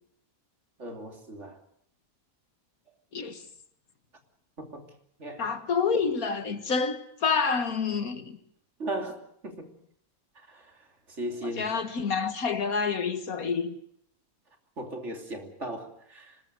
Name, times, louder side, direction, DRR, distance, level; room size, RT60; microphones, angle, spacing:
voice 1, 0.8-1.6 4.6-4.9 5.2-5.5 8.8-9.7 10.3-11.6 14.8-16.4, right 1 dB, 55° right, 3.3 m, -37 dB
voice 2, 5.4-8.4 11.6-13.8, left 5 dB, 80° left, 2.2 m, -28 dB
25.5 x 20.5 x 6.8 m
omnidirectional pair, 1.5 m